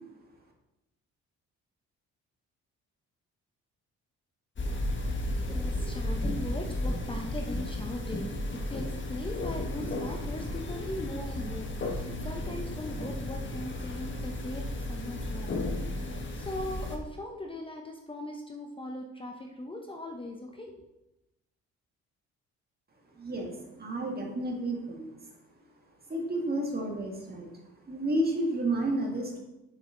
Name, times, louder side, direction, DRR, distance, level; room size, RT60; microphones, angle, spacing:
sound 1, 4.6-17.0, left 1 dB, 40° left, 1.5 m, -34 dB
voice 1, 5.4-15.6 16.0-20.8, left 1 dB, 15° left, 2 dB, 0.9 m, -39 dB
voice 2, 23.2-25.2 26.1-27.5 27.9-29.4, right 1 dB, 30° right, 0 dB, 2.1 m, -31 dB
8.2 x 6.2 x 3.9 m, 0.95 s
cardioid pair, 90°, 30 cm